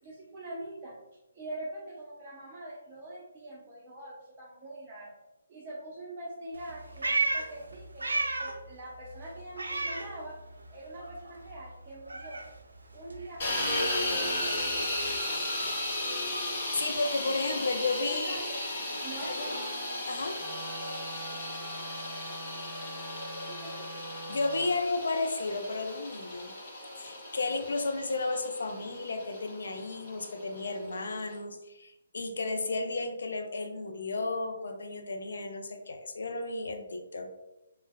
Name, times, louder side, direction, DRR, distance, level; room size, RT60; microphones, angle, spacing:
voice 1, 0.0-0.9 1.3-5.1 5.5-10.4 10.7-12.4 12.9-14.8 18.1-18.6 19.0-19.3 23.5-24.0, right 1 dB, 20° right, -7 dB, 0.6 m, -44 dB
Meow, 6.5-8.7 9.0-10.7 11.0-15.2, right 3 dB, 70° right, 0.4 m, -35 dB
sound 1, 13.4-31.3, left 1 dB, 35° left, 0.9 m, -35 dB
voice 2, 16.7-18.4 19.2-19.5 20.1-20.4 24.3-26.5 27.0-37.4, left 3 dB, 60° left, 5 dB, 0.4 m, -33 dB
Wind instrument woodwind instrument, 20.3-24.7, right 2 dB, ahead, 1.4 m, -44 dB
3.2 x 2.1 x 2.2 m, 0.96 s
figure-of-eight pair, 140°, 0 cm